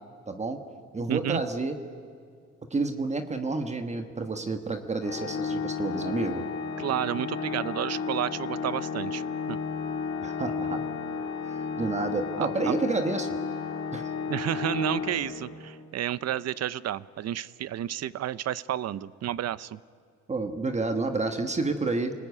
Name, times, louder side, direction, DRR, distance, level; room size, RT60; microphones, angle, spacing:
voice 1, 0.3-0.6 0.9-1.8 2.7-6.4 10.2-10.8 11.4-13.4 13.9-14.1 20.3-22.1, right 3 dB, 25° right, 7 dB, 1.3 m, -30 dB
voice 2, 1.1-1.4 6.8-9.2 9.5-9.6 12.4-12.8 14.3-19.8, right 11 dB, 60° right, 18 dB, 0.7 m, -31 dB
Organ, 5.0-15.8, left 5 dB, 65° left, 3.5 m, -33 dB
28.0 x 20.0 x 9.7 m, 2.2 s
wide cardioid pair, 160°, 29 cm